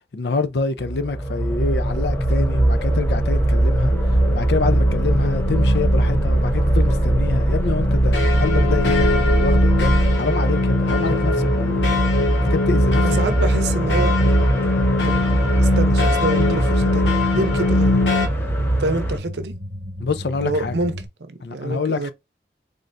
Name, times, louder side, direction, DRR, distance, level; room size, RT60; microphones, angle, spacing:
voice 1, 0.1-11.8 12.4-13.4 20.0-20.8 21.4-22.1, left 4 dB, 70° left, 0.5 m, -26 dB
sound 1, 0.8-19.2, right 1 dB, 15° left, 0.7 m, -20 dB
sound 2, 1.5-21.1, right 1 dB, 45° right, 0.9 m, -30 dB
sound 3, 3.9-18.3, left 3 dB, 85° left, 1.0 m, -24 dB
voice 2, 13.0-14.2 15.0-15.2 15.6-18.0 18.8-19.6 20.4-20.9 21.2-22.1, right 2 dB, 75° right, 0.6 m, -26 dB
3.8 x 3.3 x 2.5 m
head